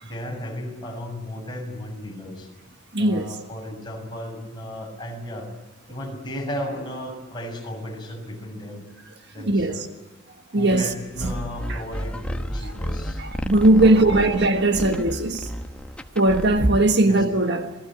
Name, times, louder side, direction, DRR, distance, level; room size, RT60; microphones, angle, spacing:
voice 1, 0.0-2.5 3.0-5.5 5.9-8.9 9.3-9.9 10.5-13.2 13.8-14.4 17.1-17.2, left 1 dB, 20° left, 6.5 m, -35 dB
voice 2, 2.9-3.3 9.4-9.9 10.5-10.8 11.2-11.3 11.7-11.8 13.2-15.5 16.1-17.7, right 2 dB, 55° right, 1.4 m, -19 dB
sound 1, 11.2-16.9, equal, 5° left, 1.1 m, -32 dB
28.5 x 19.5 x 8.9 m
head